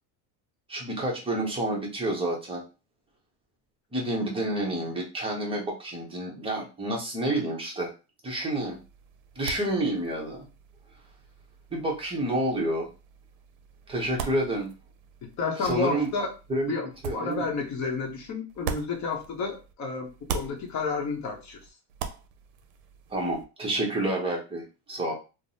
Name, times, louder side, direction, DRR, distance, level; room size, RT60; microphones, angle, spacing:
voice 1, 0.7-2.6 3.9-7.9 8.2-8.8 9.4-10.5 11.7-12.9 13.9-14.7 15.6-16.1 16.5-16.7 17.0-17.5 23.1-25.1, right 1 dB, 10° right, -1 dB, 0.7 m, -29 dB
sound 1, 8.6-19.7 20.0-23.5, right 6 dB, 75° right, 0.6 m, -41 dB
voice 2, 15.4-16.3 16.7-16.9 17.1-21.6, left 4 dB, 35° left, 3 dB, 0.8 m, -30 dB
3.3 x 2.0 x 2.7 m, 0.31 s
supercardioid pair, 125°, 48 cm